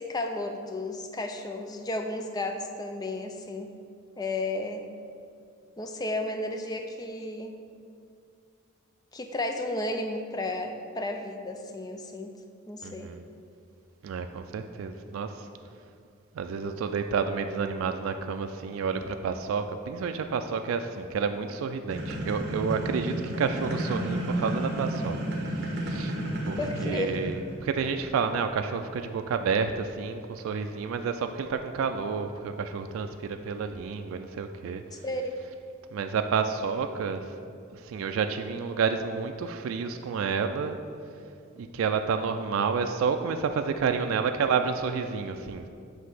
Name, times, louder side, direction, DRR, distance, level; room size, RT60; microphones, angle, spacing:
voice 1, 0.0-3.7 4.2-4.8 5.8-7.5 9.1-12.3 12.7-13.1 26.6-27.2 34.9-35.4, left 2 dB, 20° left, 5 dB, 0.4 m, -33 dB
voice 2, 12.8-13.2 14.0-15.5 16.3-25.2 25.5-26.1 26.4-34.8 35.9-37.3 37.7-40.8 41.6-45.7, right 5 dB, 85° right, 7 dB, 0.3 m, -30 dB
sound 1, 21.9-27.5, right 1 dB, 55° right, 1.1 m, -31 dB
7.9 x 2.8 x 5.9 m, 2.4 s
head